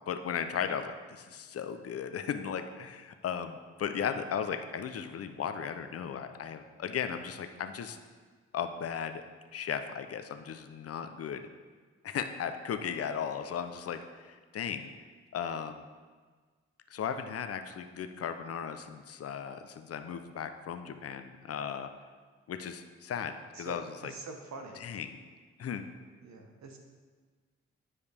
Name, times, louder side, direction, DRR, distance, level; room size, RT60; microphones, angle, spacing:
voice 1, 0.1-8.0 8.5-9.2 9.5-11.4 12.0-14.9 15.3-15.8 16.9-21.9 22.5-24.1 24.8-25.2 25.6-25.9, left 7 dB, 55° left, 8 dB, 0.6 m, -36 dB
voice 2, 23.5-24.8 26.2-26.8, right 3 dB, 70° right, 3 dB, 1.1 m, -45 dB
9.6 x 4.8 x 3.5 m, 1.5 s
supercardioid pair, 50°, 29 cm